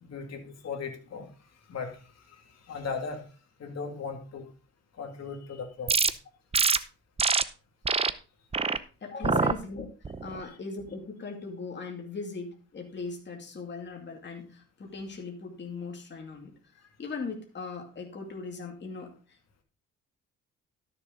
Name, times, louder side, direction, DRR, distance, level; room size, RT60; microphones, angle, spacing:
voice 1, 0.0-1.3 1.7-2.0 2.3-3.3 3.6-4.5 5.0-5.9 9.2-9.4, left 5 dB, 60° left, 4 dB, 2.5 m, -37 dB
sound 1, 5.9-6.1 6.5-6.8 7.2-7.4 7.9-8.1 8.5-8.8 9.2-9.5 10.0-10.4, right 4 dB, 20° right, 0.6 m, -24 dB
voice 2, 9.0-9.9 10.2-19.4, left 4 dB, 35° left, 2 dB, 2.5 m, -39 dB
12.5 x 6.9 x 3.9 m, 0.36 s
cardioid pair, 90°, 30 cm